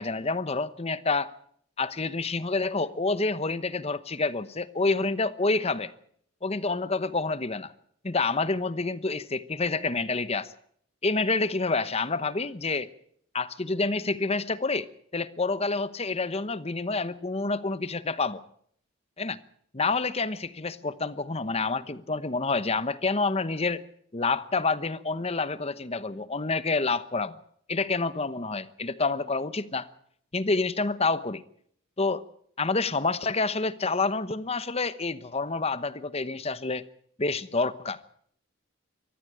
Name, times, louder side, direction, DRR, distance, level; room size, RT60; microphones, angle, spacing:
voice 1, 0.0-1.3 1.8-5.9 6.4-7.7 8.0-10.5 11.0-12.9 13.3-14.9 15.1-18.4 19.2-19.4 19.7-23.9 24.1-27.4 27.7-29.9 30.3-31.4 32.0-32.2 32.6-36.8 37.2-38.0, left 3 dB, 30° left, 1.0 m, -28 dB
23.0 x 14.5 x 9.0 m
head